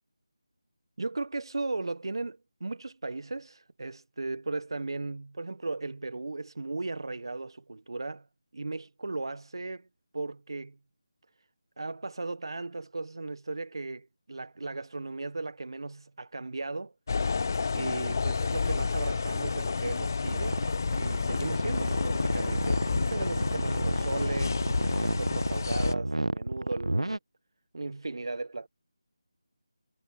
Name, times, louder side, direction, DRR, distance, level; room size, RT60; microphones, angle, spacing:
voice 1, 1.0-8.3 8.5-9.9 10.1-10.8 11.8-16.9 17.7-20.6 21.0-24.7 25.0-27.1 27.7-28.7, right 3 dB, 60° right, 1.5 m, -36 dB
sound 1, 17.1-25.9, left 4 dB, 40° left, 0.4 m, -30 dB
sound 2, 20.3-27.2, right 1 dB, 85° right, 1.2 m, -30 dB
figure-of-eight pair, 160°, 3 cm